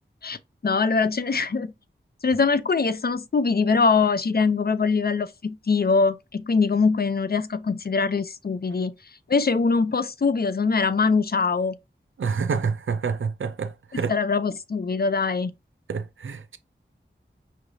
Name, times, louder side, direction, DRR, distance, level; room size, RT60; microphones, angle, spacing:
voice 1, 0.6-1.7 2.2-8.9 9.3-11.8 13.9-15.5, left 4 dB, 55° left, 0.5 m, -23 dB
voice 2, 12.2-14.1 15.9-16.6, right 5 dB, 85° right, 0.5 m, -28 dB
5.7 x 3.2 x 2.6 m
wide cardioid pair, 70°, 20 cm